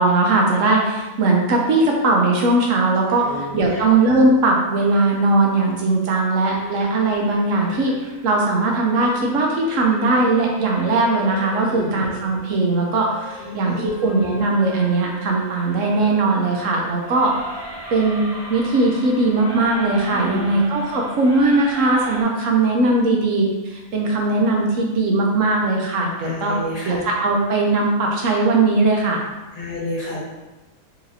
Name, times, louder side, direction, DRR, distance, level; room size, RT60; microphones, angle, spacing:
voice 1, 0.0-7.9 8.2-17.3 17.9-26.5 26.9-29.2, right 2 dB, 70° right, 0 dB, 1.0 m, -19 dB
voice 2, 3.1-3.8 11.6-12.0 13.4-13.9 20.1-20.6 26.2-27.0 29.5-30.2, left 1 dB, 40° left, -7 dB, 1.2 m, -30 dB
sound 1, 6.5-22.2, right 2 dB, 35° right, 0.4 m, -38 dB
4.1 x 2.9 x 2.6 m, 1.1 s
omnidirectional pair, 1.4 m